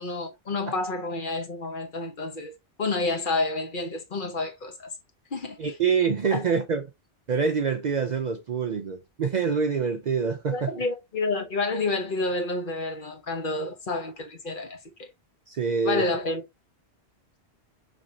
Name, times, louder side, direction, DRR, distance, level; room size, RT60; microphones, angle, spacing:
voice 1, 0.0-2.5 2.8-4.9 5.3-5.6 6.3-6.4 10.5-15.1 15.8-16.4, left 3 dB, 55° left, 1.0 m, -29 dB
voice 2, 5.6-6.8 7.3-10.7 15.5-16.1, right 5 dB, 55° right, 0.5 m, -26 dB
5.1 x 3.1 x 2.6 m
omnidirectional pair, 1.1 m